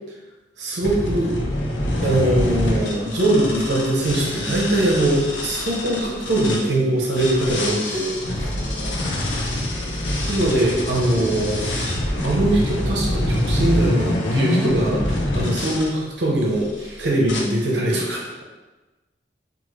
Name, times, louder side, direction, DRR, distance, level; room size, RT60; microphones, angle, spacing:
voice 1, 0.6-1.3 2.0-8.5 10.3-11.7 12.2-18.3, right 1 dB, 70° right, -3 dB, 0.7 m, -22 dB
sound 1, 0.8-6.6 7.1-15.9 16.5-16.9 17.3-17.4, left 1 dB, 80° left, 0.5 m, -25 dB
voice 2, 8.3-9.5 15.1-15.3 18.4-18.5, right 2 dB, 35° right, -5 dB, 0.3 m, -40 dB
2.5 x 2.5 x 3.1 m, 1.1 s
head